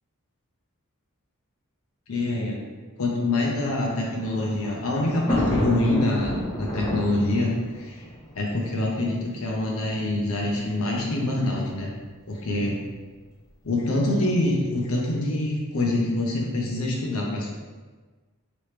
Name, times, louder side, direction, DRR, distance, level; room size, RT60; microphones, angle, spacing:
voice 1, 2.1-2.6 3.0-8.0 8.3-11.9 12.3-12.8 13.6-17.5, left 1 dB, 75° left, -2 dB, 0.7 m, -25 dB
Thunder, 3.8-9.2 10.0-10.1 10.3-10.4 11.5-11.8, left 1 dB, 15° left, 0.6 m, -30 dB
3.0 x 3.0 x 3.3 m, 1.3 s
head